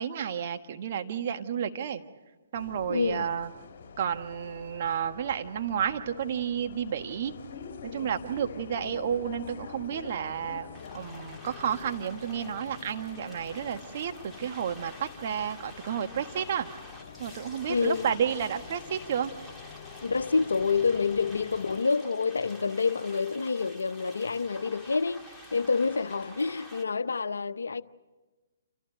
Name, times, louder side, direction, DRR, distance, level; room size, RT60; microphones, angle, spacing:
voice 1, 0.0-2.0 2.5-3.5 4.0-7.3 7.8-10.7 10.9-14.1 14.4-16.7 17.2-19.3, right 8 dB, 50° right, 1.5 m, -31 dB
Bus, 2.5-21.8, left 6 dB, 50° left, 3.0 m, -46 dB
voice 2, 2.9-3.3 17.7-18.1 20.0-27.8, left 4 dB, 75° left, 0.8 m, -28 dB
sound 1, 10.7-26.8, left 1 dB, ahead, 1.9 m, -49 dB
27.5 x 14.5 x 8.9 m
figure-of-eight pair, 135°, 0 cm